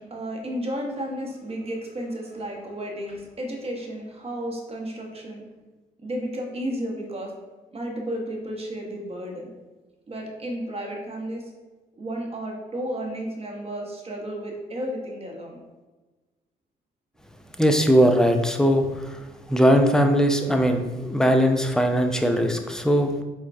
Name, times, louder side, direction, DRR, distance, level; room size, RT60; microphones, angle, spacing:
voice 1, 0.0-5.4 6.0-7.3 7.7-9.5 10.1-11.5 12.0-15.6, equal, 30° right, 1 dB, 0.8 m, -33 dB
voice 2, 17.6-19.2 19.5-23.2, equal, 5° left, 5 dB, 0.4 m, -20 dB
4.3 x 2.1 x 2.5 m, 1.2 s
supercardioid pair, 60°, 19 cm